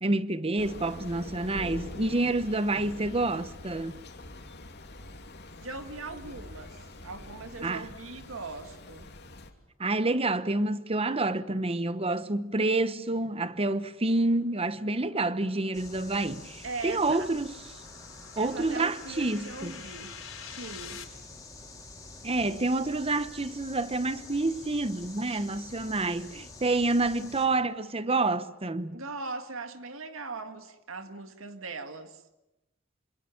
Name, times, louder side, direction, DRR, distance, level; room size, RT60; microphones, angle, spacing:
voice 1, 0.0-4.0 7.6-7.9 9.8-17.5 18.4-19.7 22.2-29.0, right 2 dB, 30° right, 1.0 m, -28 dB
Thunder / Rain, 0.6-9.5, left 1 dB, 55° left, 2.9 m, -44 dB
voice 2, 5.6-9.1 16.6-17.3 18.4-20.1 20.4-21.0 25.3-25.5 28.9-32.2, right 3 dB, 75° right, 1.9 m, -40 dB
sound 1, 14.2-21.0, left 8 dB, 80° left, 4.3 m, -48 dB
sound 2, 15.7-27.5, left 3 dB, 20° left, 4.3 m, -47 dB
26.5 x 26.0 x 7.2 m
head